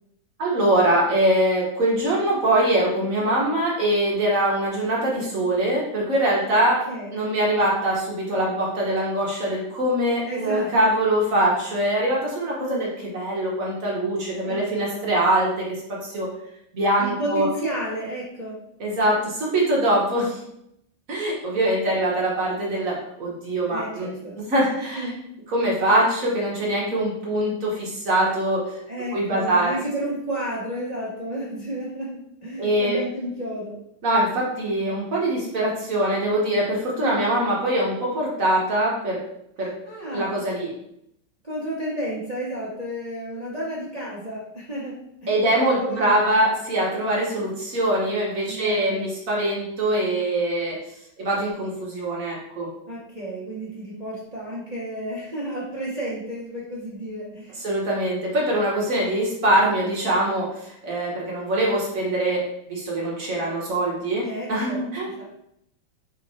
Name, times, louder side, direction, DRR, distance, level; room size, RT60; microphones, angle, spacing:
voice 1, 0.4-6.8 7.1-15.6 16.0-16.3 16.7-17.5 18.8-20.4 21.1-24.1 24.4-25.1 25.5-28.8 29.1-29.8 32.6-33.0 34.0-39.2 39.6-39.7 40.1-40.7 45.3-50.8 51.2-52.7 57.6-62.4 62.7-65.1, right 1 dB, 50° right, -3 dB, 1.1 m, -23 dB
voice 2, 10.2-10.9 12.6-12.8 14.4-15.0 17.0-18.6 23.7-24.3 24.9-25.2 28.9-33.8 37.0-37.2 39.6-40.4 41.4-46.4 47.5-47.6 48.5-49.1 52.9-57.6 64.2-64.8 65.2-65.3, right 1 dB, 85° right, -7 dB, 0.3 m, -32 dB
3.5 x 3.1 x 4.0 m, 0.77 s
omnidirectional pair, 2.3 m